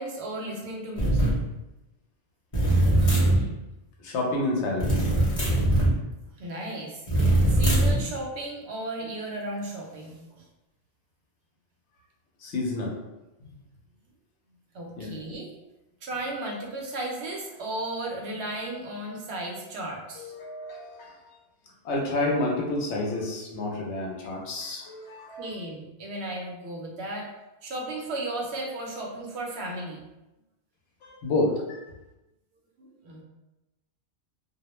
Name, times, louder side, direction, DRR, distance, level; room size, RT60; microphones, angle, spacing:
voice 1, 0.0-1.3 6.4-7.0 7.5-10.4 14.7-15.5 16.0-20.3 25.4-27.3 27.6-30.0 32.8-33.2, right 1 dB, 75° right, -1 dB, 0.9 m, -35 dB
sound 1, 1.0-1.4 2.5-3.4 4.8-5.9 7.1-8.0, right 1 dB, 35° left, 0.7 m, -21 dB
voice 2, 4.0-5.1 12.4-12.9 15.0-15.1 20.2-21.4 21.8-25.5 31.0-31.8, left 2 dB, 80° left, -1 dB, 0.9 m, -29 dB
2.4 x 2.0 x 2.9 m, 0.97 s
omnidirectional pair, 1.2 m